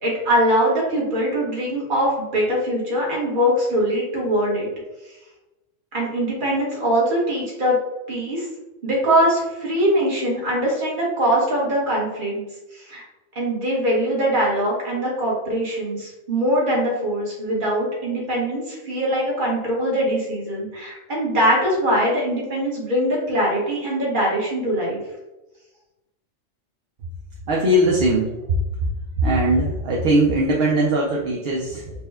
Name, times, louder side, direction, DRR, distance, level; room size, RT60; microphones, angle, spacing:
voice 1, 0.0-4.7 5.9-7.8 8.1-8.5 8.8-12.4 12.7-13.0 13.3-25.0, equal, 45° right, -4 dB, 1.3 m, -22 dB
voice 2, 27.5-28.9 29.2-31.9, right 1 dB, 60° right, -2 dB, 0.7 m, -20 dB
4.2 x 2.2 x 3.4 m, 1.0 s
omnidirectional pair, 1.3 m